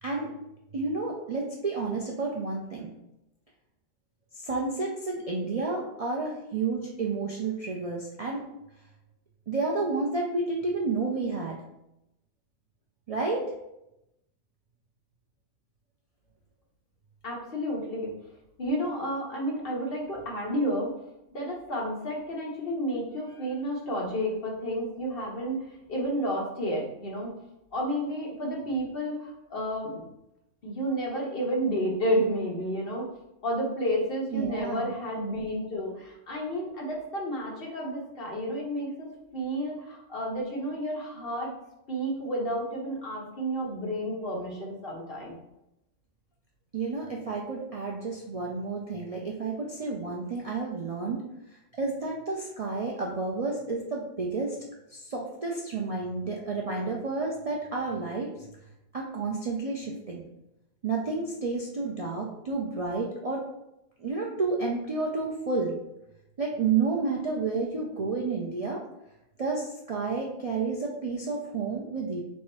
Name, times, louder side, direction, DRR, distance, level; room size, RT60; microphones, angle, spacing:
voice 1, 0.7-2.9 4.3-8.4 9.5-11.6 13.1-13.4 34.3-34.9 46.7-51.2 51.5-54.5 54.9-58.5 58.9-60.2 60.8-63.4 64.0-65.8 66.4-68.8 69.4-72.2, right 4 dB, 45° right, -2 dB, 0.5 m, -30 dB
voice 2, 17.2-18.1 18.6-21.0 21.3-25.6 25.9-27.3 27.7-30.0 30.6-33.1 33.4-41.5 41.9-45.4, equal, 55° left, -3 dB, 1.3 m, -31 dB
3.5 x 3.2 x 4.2 m, 0.87 s
omnidirectional pair, 1.2 m